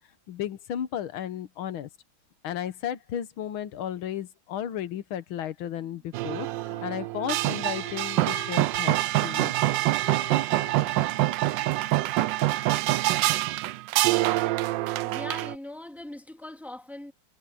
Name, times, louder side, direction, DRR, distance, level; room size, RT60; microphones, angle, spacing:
voice 1, 0.3-1.9 2.4-9.0 9.2-9.6, left 10 dB, 85° left, 1.9 m, -34 dB
Wind instrument woodwind instrument, 5.7-13.0, right 2 dB, 55° right, 5.2 m, -48 dB
sound 1, 6.1-15.5, right 16 dB, 75° right, 1.2 m, -25 dB
voice 2, 15.0-17.1, left 1 dB, ahead, 2.0 m, -40 dB
omnidirectional pair, 2.2 m